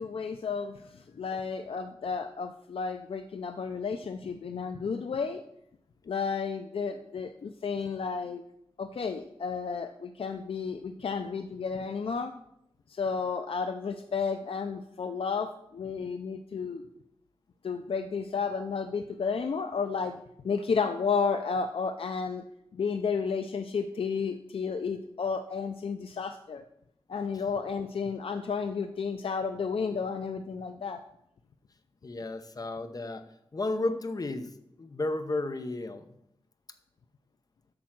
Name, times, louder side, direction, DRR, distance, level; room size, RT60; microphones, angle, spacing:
voice 1, 0.0-5.4 6.1-8.4 8.8-12.3 12.9-16.8 17.6-20.2 20.4-22.4 22.7-26.6 27.1-31.0, left 5 dB, 65° left, 8 dB, 0.5 m, -32 dB
voice 2, 32.0-33.2 33.5-34.5 34.8-36.1, left 2 dB, 40° left, 9 dB, 0.8 m, -32 dB
8.7 x 6.2 x 5.9 m, 0.79 s
wide cardioid pair, 110°, 10 cm